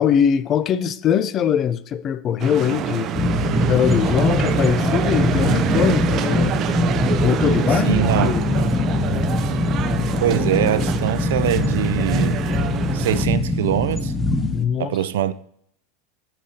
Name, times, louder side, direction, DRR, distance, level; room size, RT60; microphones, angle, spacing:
voice 1, 0.0-3.1 3.6-6.5 7.2-8.0 8.2-8.5 14.5-15.0, left 8 dB, 35° left, 0.5 m, -21 dB
sound 1, 2.4-13.3, right 10 dB, 40° right, 0.6 m, -26 dB
sound 2, 3.1-14.7, left 2 dB, 5° left, 0.8 m, -22 dB
voice 2, 7.7-8.4 9.4-9.5 10.2-12.6 12.9-14.1 14.8-15.3, right 11 dB, 85° right, 0.4 m, -23 dB
15.0 x 6.0 x 2.8 m
supercardioid pair, 130°, 0 cm